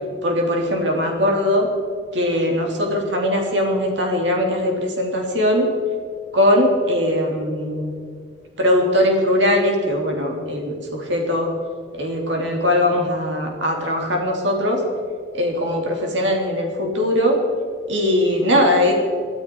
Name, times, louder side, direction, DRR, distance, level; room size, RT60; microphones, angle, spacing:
voice 1, 0.2-1.7 2.1-5.7 6.3-7.9 8.6-11.5 11.9-14.8 15.3-17.4 17.9-18.9, left 1 dB, 70° right, 1 dB, 3.3 m, -20 dB
23.0 x 12.5 x 4.7 m, 2.1 s
head